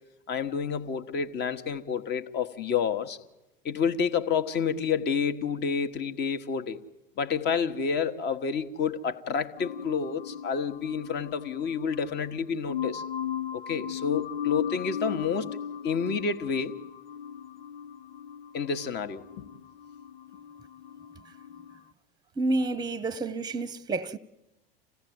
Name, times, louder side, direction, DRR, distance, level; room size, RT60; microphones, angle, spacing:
voice 1, 0.3-3.2 3.6-6.8 7.2-13.0 13.5-15.5 15.8-16.7 18.5-19.5, left 6 dB, 35° left, 1.4 m, -29 dB
sound 1, 9.6-21.8, left 8 dB, 75° left, 0.8 m, -37 dB
voice 2, 22.4-24.2, right 2 dB, 15° right, 0.9 m, -29 dB
27.0 x 16.5 x 9.4 m
figure-of-eight pair, 80°, 30 cm